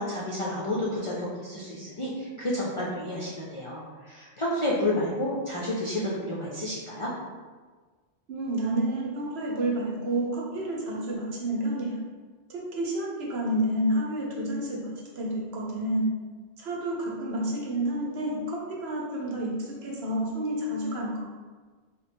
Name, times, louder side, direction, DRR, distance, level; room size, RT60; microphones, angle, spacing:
voice 1, 0.0-7.1, left 1 dB, 45° left, -6 dB, 0.4 m, -30 dB
voice 2, 8.3-11.9 12.5-16.1 16.6-21.1, right 1 dB, 70° right, -2 dB, 1.0 m, -29 dB
3.2 x 2.2 x 4.2 m, 1.4 s
omnidirectional pair, 1.1 m